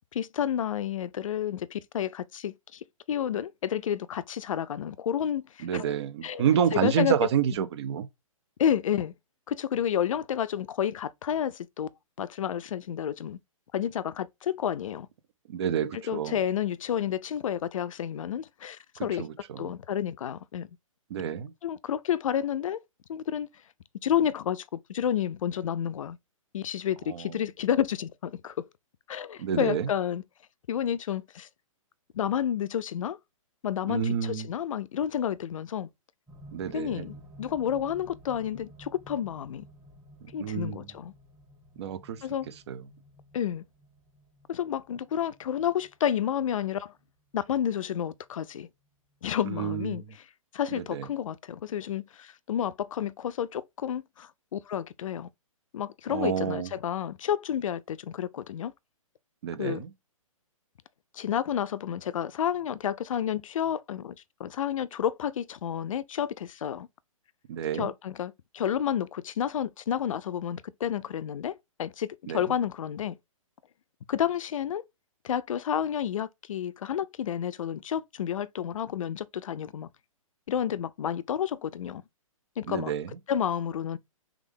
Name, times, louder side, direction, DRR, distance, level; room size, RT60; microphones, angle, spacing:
voice 1, 0.1-5.9 6.2-6.5 6.7-7.1 8.6-9.1 9.5-11.9 12.2-13.4 13.7-15.1 15.9-19.3 19.6-20.7 21.6-22.8 23.1-23.5 24.0-26.2 26.5-28.7 29.1-30.2 30.7-31.5 32.1-33.2 33.6-35.9 36.7-39.7 40.3-41.1 42.2-42.5 43.3-43.6 44.5-46.9 47.3-48.7 49.2-50.3 50.5-55.3 55.7-58.7 59.6-59.8 61.1-66.9 67.8-73.2 74.1-74.8 75.2-79.9 80.5-82.0 82.6-82.9 83.3-84.0, left 9 dB, 65° left, 0.4 m, -30 dB
voice 2, 5.6-8.1 15.5-16.4 19.2-19.7 21.1-21.5 27.1-27.3 29.4-29.9 33.9-34.5 36.5-37.1 40.4-40.8 41.8-42.2 42.7-42.8 49.4-50.0 50.7-51.1 56.1-56.7 59.4-59.9 67.5-67.9 72.3-72.4 82.7-83.1, right 8 dB, 50° right, 0.7 m, -29 dB
sound 1, 36.3-48.4 49.4-49.5, right 1 dB, 15° right, 1.6 m, -53 dB
3.5 x 3.5 x 3.5 m
hypercardioid pair, 135°, 18 cm